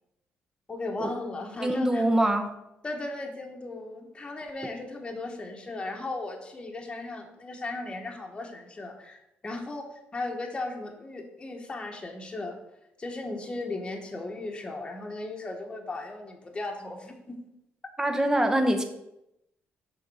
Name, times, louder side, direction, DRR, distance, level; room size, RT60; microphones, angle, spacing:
voice 1, 0.7-2.0 2.8-9.9 10.1-12.6 13.0-17.4, left 2 dB, 25° left, 2 dB, 1.1 m, -36 dB
voice 2, 1.6-2.5 18.0-18.8, right 1 dB, 15° right, 6 dB, 0.8 m, -24 dB
6.6 x 4.0 x 5.4 m, 0.86 s
cardioid pair, 115°, 4 cm